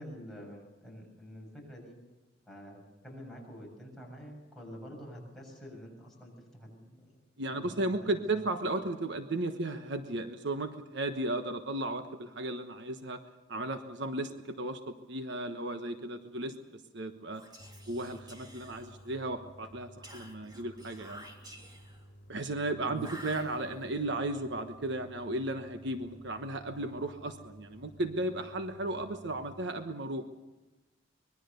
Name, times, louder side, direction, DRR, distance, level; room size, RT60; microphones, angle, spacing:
voice 1, 0.0-2.0 2.5-7.2 7.5-8.0 8.3-8.4 22.8-23.1, equal, ahead, -3 dB, 7.3 m, -47 dB
voice 2, 7.4-13.2 13.5-17.4 17.9-21.2 22.3-30.3, right 2 dB, 65° right, 7 dB, 1.2 m, -35 dB
Whispering, 17.3-19.3 20.0-22.1 23.0-24.0, right 1 dB, 20° right, 3.1 m, -50 dB
sound 1, 17.6-29.7, equal, 45° left, 4.1 m, -54 dB
25.0 x 21.0 x 6.8 m, 1.1 s
head